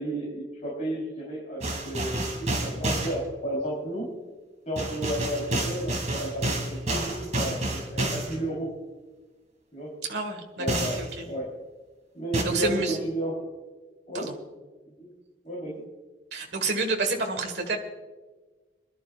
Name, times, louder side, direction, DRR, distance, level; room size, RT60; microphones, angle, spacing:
voice 1, 0.0-2.3 2.6-4.1 4.7-8.7 9.7-9.9 10.6-11.5 12.1-13.5 14.1-14.3 15.0-15.1 15.4-15.8, right 1 dB, 40° left, -5 dB, 3.8 m, -32 dB
sound 1, 1.6-3.1 4.8-8.4 10.7-11.1 12.3-12.4, right 1 dB, 35° right, 2.6 m, -29 dB
voice 2, 10.1-11.3 12.4-13.0 14.1-14.3 16.3-17.8, right 3 dB, 60° right, 3 dB, 1.6 m, -29 dB
26.5 x 11.5 x 2.5 m, 1.3 s
head